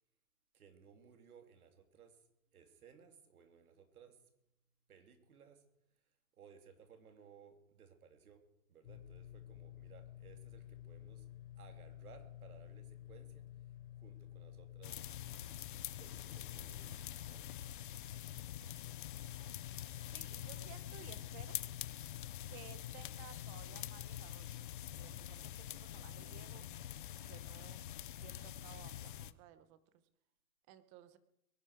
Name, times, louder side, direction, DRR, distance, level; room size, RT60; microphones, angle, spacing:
voice 1, 0.5-2.1 2.5-4.2 4.9-5.6 6.4-8.4 8.7-11.2 11.6-13.4 14.0-15.0 16.0-17.5, right 7 dB, 90° right, 6 dB, 3.2 m, -61 dB
sound 1, 8.8-24.9, left 12 dB, 55° left, 3.3 m, -52 dB
sound 2, 14.8-29.3, left 11 dB, 40° left, 0.5 m, -46 dB
voice 2, 20.1-21.6 22.5-26.6 27.3-27.8 28.2-30.0 30.7-31.2, right 11 dB, 20° right, 13 dB, 0.9 m, -57 dB
22.5 x 11.5 x 4.8 m, 0.80 s
hypercardioid pair, 160°, 43 cm